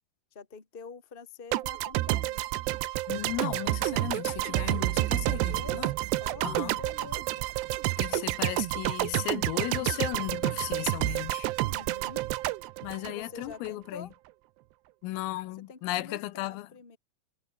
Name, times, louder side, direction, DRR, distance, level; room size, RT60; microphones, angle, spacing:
voice 1, 0.3-2.4 4.4-4.7 5.3-5.9 6.2-7.4 11.7-12.2 13.0-14.1 15.7-17.0, left 5 dB, 25° left, 1.2 m, -46 dB
sound 1, 1.5-13.7, right 17 dB, 80° right, 2.5 m, -29 dB
voice 2, 3.1-5.9 6.4-6.8 8.0-11.5 12.8-14.1 15.0-16.7, left 17 dB, 85° left, 3.7 m, -35 dB
omnidirectional pair, 5.9 m